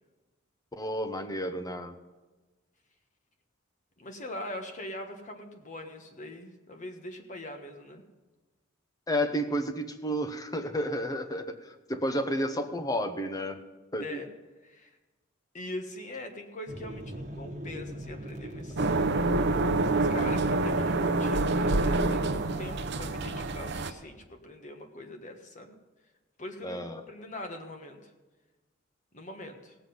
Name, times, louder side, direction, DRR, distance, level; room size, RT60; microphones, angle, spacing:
voice 1, 0.7-1.9 9.1-13.6 13.9-14.2 18.7-19.0 26.6-27.0, equal, 20° left, 8 dB, 0.9 m, -31 dB
voice 2, 4.0-8.0 14.0-14.3 14.6-15.0 15.5-18.8 19.5-25.7 26.4-26.8 27.1-28.1 29.1-29.7, left 1 dB, 40° left, 5 dB, 1.4 m, -42 dB
sound 1, 16.7-23.6, right 1 dB, 35° right, 1.3 m, -41 dB
sound 2, 18.8-23.9, right 2 dB, 60° right, 0.7 m, -27 dB
17.5 x 7.8 x 5.4 m, 1.2 s
head